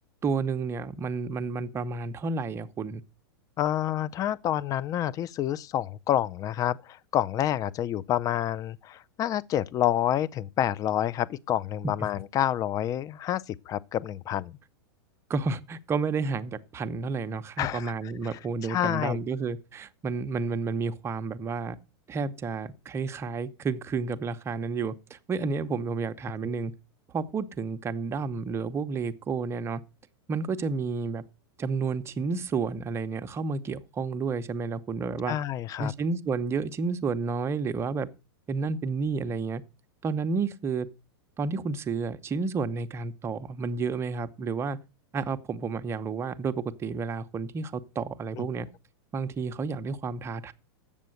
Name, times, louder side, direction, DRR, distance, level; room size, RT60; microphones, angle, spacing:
voice 1, 0.2-3.0 15.3-21.8 22.1-26.7 27.1-29.8 30.3-31.2 31.6-35.4 35.8-38.1 38.5-39.6 40.0-40.9 41.4-44.8 45.1-48.7 49.1-50.5, right 4 dB, 20° right, 0.8 m, -31 dB
voice 2, 3.6-14.6 17.6-17.9 18.3-19.2 26.4-26.6 35.3-35.9 48.4-48.5, left 11 dB, 25° left, 0.5 m, -28 dB
8.5 x 6.9 x 7.8 m
hypercardioid pair, 135°, 13 cm